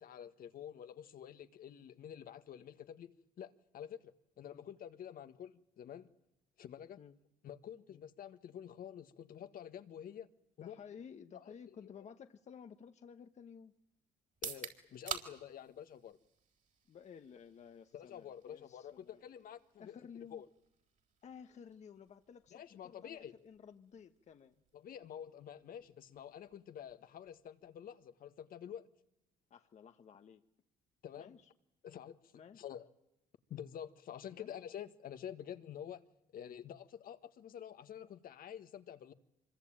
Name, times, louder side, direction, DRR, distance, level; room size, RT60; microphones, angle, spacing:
voice 1, 0.0-6.1 6.6-7.0 7.4-10.3 10.6-10.8 11.3-11.4 14.4-16.2 17.9-20.4 22.5-23.3 24.7-28.9 31.0-31.3 31.8-32.9 33.5-36.0 36.3-39.1, left 9 dB, 60° left, 1.6 m, -49 dB
voice 2, 10.6-13.7 16.9-19.2 19.8-20.4 21.2-24.6 29.5-30.4 31.2-31.5 32.3-32.6 34.3-34.5, left 7 dB, 45° left, 1.3 m, -54 dB
sound 1, 14.3-28.1, right 7 dB, 50° right, 3.9 m, -52 dB
25.5 x 22.5 x 8.9 m
cardioid pair, 110°, 17 cm